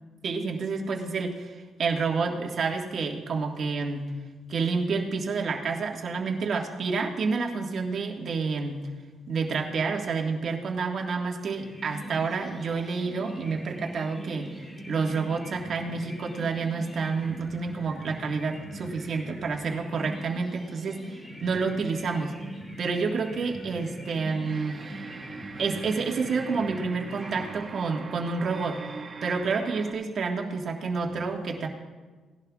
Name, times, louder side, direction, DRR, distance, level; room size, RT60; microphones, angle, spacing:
voice 1, 0.2-4.1 4.5-8.8 9.3-14.5 14.9-22.4 22.8-24.8 25.6-28.8 29.2-31.7, right 4 dB, 55° right, 2 dB, 1.6 m, -29 dB
sound 1, 11.6-28.2, equal, 20° left, 1.9 m, -42 dB
sound 2, 24.4-29.9, right 4 dB, 40° right, 1.1 m, -42 dB
18.0 x 11.5 x 2.4 m, 1.4 s
cardioid pair, 90°, 0 cm